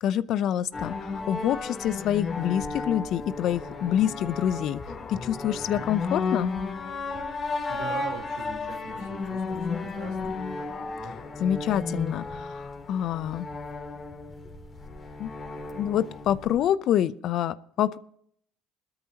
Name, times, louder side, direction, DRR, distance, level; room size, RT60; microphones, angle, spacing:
voice 1, 0.0-4.8 5.1-6.5 11.4-13.5 15.2-15.3 15.7-18.0, left 10 dB, 60° left, 16 dB, 0.6 m, -27 dB
sound 1, 0.7-16.7, left 3 dB, 40° left, 3.2 m, -34 dB
voice 2, 7.7-10.3, right 4 dB, 80° right, -1 dB, 3.5 m, -41 dB
21.0 x 13.0 x 2.9 m, 0.67 s
hypercardioid pair, 70°, 0 cm